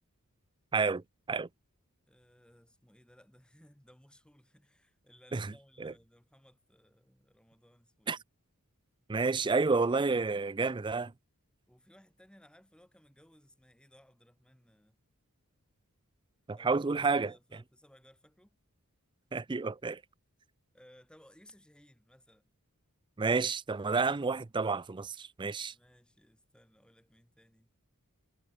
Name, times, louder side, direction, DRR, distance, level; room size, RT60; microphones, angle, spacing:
voice 1, 0.7-1.5 5.3-5.5 5.8-5.9 8.1-8.2 9.1-11.1 16.5-17.3 19.3-20.0 23.2-25.7, right 4 dB, 20° right, 0.4 m, -30 dB
voice 2, 2.1-8.2 11.7-15.0 16.5-18.6 20.7-22.4 25.6-27.7, equal, 5° left, 4.6 m, -61 dB
head